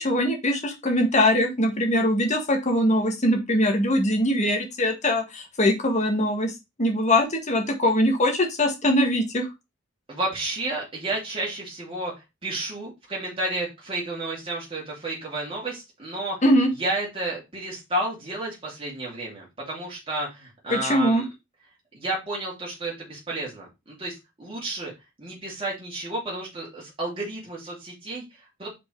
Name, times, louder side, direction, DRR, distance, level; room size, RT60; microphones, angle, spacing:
voice 1, 0.0-6.5 6.8-9.5 16.4-16.7 20.7-21.2, left 1 dB, 35° left, 3 dB, 1.6 m, -22 dB
voice 2, 10.1-12.1 12.4-16.4 16.8-21.2 21.9-24.9 25.2-28.7, right 2 dB, 25° right, -4 dB, 2.6 m, -31 dB
5.2 x 4.6 x 4.5 m, 0.23 s
head